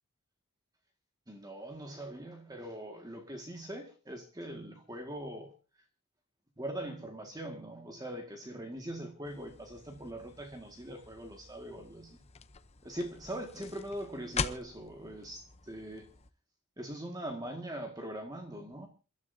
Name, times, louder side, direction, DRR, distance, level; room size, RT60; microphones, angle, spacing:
voice 1, 1.3-5.5 6.6-12.3 12.8-16.1 16.8-18.9, right 1 dB, 20° right, 1.9 m, -42 dB
sound 1, 9.2-16.3, left 5 dB, 30° left, 0.8 m, -43 dB
28.5 x 12.5 x 2.7 m
head